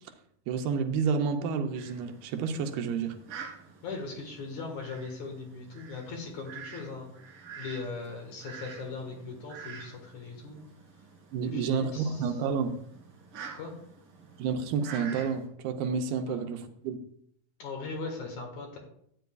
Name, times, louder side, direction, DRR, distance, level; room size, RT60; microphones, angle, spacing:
voice 1, 0.5-3.2 11.3-12.8 14.4-17.0, right 6 dB, 90° right, 2.8 m, -30 dB
Fowl, 1.7-15.5, right 6 dB, 45° right, 2.3 m, -48 dB
voice 2, 3.8-7.1 7.6-10.6 11.4-12.3 13.5-13.7 16.3-16.4 17.6-18.8, left 4 dB, 60° left, 2.6 m, -39 dB
13.0 x 9.2 x 2.3 m
omnidirectional pair, 4.4 m